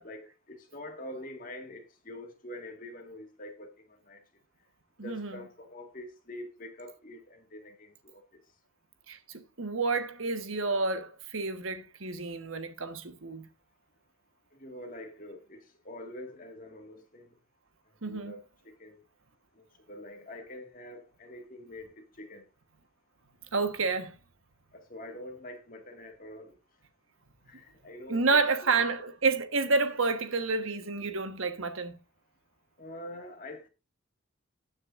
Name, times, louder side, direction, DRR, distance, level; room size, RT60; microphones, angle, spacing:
voice 1, 0.0-4.2 5.0-8.2 14.5-17.3 18.0-19.0 19.5-22.4 24.7-26.6 27.5-28.8 32.8-33.7, left 1 dB, 40° left, 2.0 m, -45 dB
voice 2, 5.0-5.4 9.1-13.5 18.0-18.3 23.5-24.2 28.1-32.0, right 4 dB, 75° right, 1.4 m, -29 dB
19.5 x 6.5 x 2.6 m
head